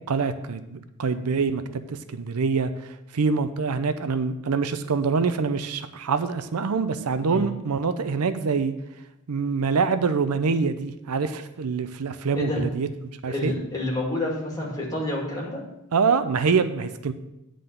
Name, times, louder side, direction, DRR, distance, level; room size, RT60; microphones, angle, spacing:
voice 1, 0.1-2.7 3.1-8.7 9.3-12.9 13.2-13.5 15.9-17.1, right 5 dB, 80° right, 11 dB, 0.6 m, -25 dB
voice 2, 12.3-12.7 13.3-15.6, left 1 dB, 15° left, -3 dB, 2.2 m, -28 dB
9.7 x 3.8 x 6.6 m, 0.89 s
head